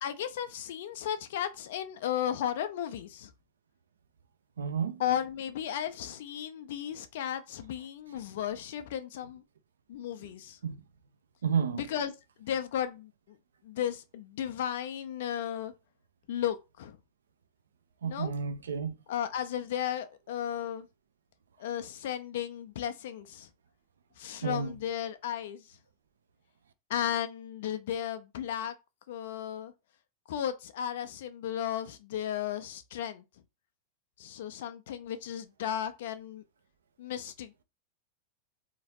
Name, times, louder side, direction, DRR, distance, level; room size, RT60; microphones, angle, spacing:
voice 1, 0.0-3.3 5.0-9.4 9.9-10.6 11.8-12.1 12.4-13.4 13.6-15.7 16.3-17.0 18.0-18.3 19.1-20.9 21.6-23.5 24.2-25.8 26.9-28.7 29.1-29.7 30.3-33.2 34.2-36.4 37.0-37.5, left 10 dB, 55° left, 0.5 m, -34 dB
voice 2, 4.6-5.0 10.6-10.8 11.4-11.8 18.0-18.9 24.4-24.7, right 6 dB, 65° right, 0.6 m, -31 dB
3.8 x 2.9 x 2.8 m
figure-of-eight pair, 90°, 0 cm